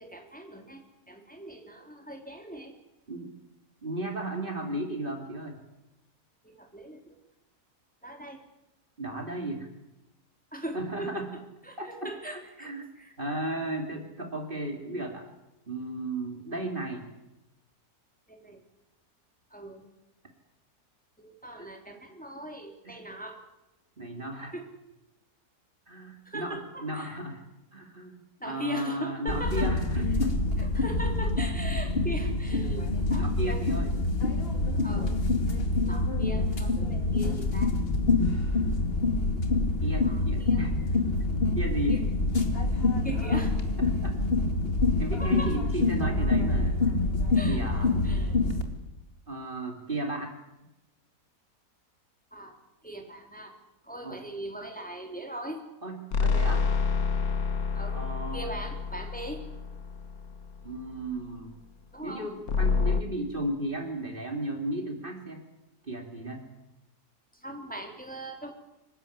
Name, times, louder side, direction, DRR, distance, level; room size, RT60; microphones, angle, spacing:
voice 1, 0.0-2.7 6.4-7.2 8.0-8.4 10.5-13.1 18.3-18.6 19.5-19.8 21.2-23.4 24.0-24.1 24.5-24.6 26.2-27.1 28.4-29.7 30.6-33.6 34.8-35.1 35.9-37.7 40.0-40.6 41.9-42.0 43.0-43.5 45.2-45.5 47.3-47.6 48.0-48.3 52.3-52.6 52.8-53.5 53.8-55.6 57.7-58.0 58.3-59.4 61.9-62.3 67.3-68.5, right 1 dB, 5° left, 3 dB, 3.2 m, -40 dB
voice 2, 3.8-5.6 9.0-9.7 10.7-11.3 11.8-12.9 13.2-15.3 15.7-17.1 21.6-21.7 22.8-23.0 24.0-24.5 25.9-27.4 27.7-30.4 33.1-33.9 39.8-40.7 41.3-42.2 43.1-43.2 43.8-44.2 45.0-46.8 47.5-47.9 49.3-50.3 54.0-54.2 55.8-56.7 57.9-58.5 60.6-61.5 62.0-65.4 65.8-66.5, right 1 dB, 30° right, 3 dB, 2.9 m, -35 dB
sound 1, 29.3-48.6, left 2 dB, 35° left, 2.6 m, -26 dB
sound 2, 56.1-60.6 62.5-63.0, left 5 dB, 65° left, 1.6 m, -28 dB
25.0 x 15.0 x 10.0 m, 0.94 s
omnidirectional pair, 1.7 m